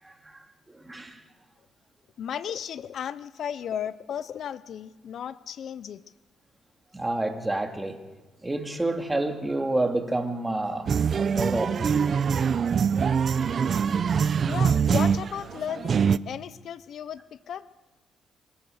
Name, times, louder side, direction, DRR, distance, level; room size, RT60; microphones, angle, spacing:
voice 1, 0.0-1.2 6.9-8.0 8.4-12.1, right 2 dB, 15° right, 4 dB, 2.5 m, -29 dB
voice 2, 2.2-6.0 14.5-17.7, left 9 dB, 65° left, 16 dB, 0.6 m, -35 dB
sound 1, 10.9-16.2, right 6 dB, 50° right, 0.6 m, -24 dB
26.0 x 13.0 x 7.9 m, 1.2 s
cardioid pair, 90°, 0 cm